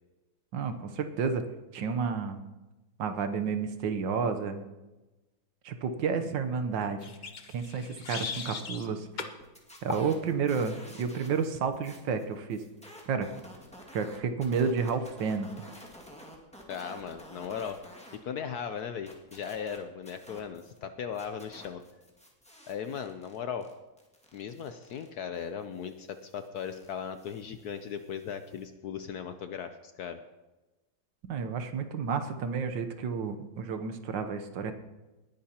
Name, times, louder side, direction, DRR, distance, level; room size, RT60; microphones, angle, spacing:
voice 1, 0.5-1.4 1.7-2.4 3.0-4.6 5.6-7.1 7.5-9.2 9.8-12.6 13.1-13.3 13.9-15.5 31.2-34.7, right 5 dB, 70° right, 8 dB, 1.5 m, -31 dB
sound 1, 7.0-8.9 9.2-9.4 9.9-10.1, left 5 dB, 85° left, 0.4 m, -38 dB
sound 2, 9.4-11.5 11.7-18.2 18.5-20.8 21.1-28.6, equal, 5° left, 1.8 m, -52 dB
voice 2, 16.7-17.8 18.1-21.8 22.7-23.7 24.3-30.2, left 7 dB, 70° left, 8 dB, 1.0 m, -37 dB
19.5 x 10.5 x 2.9 m, 1.1 s
omnidirectional pair, 2.1 m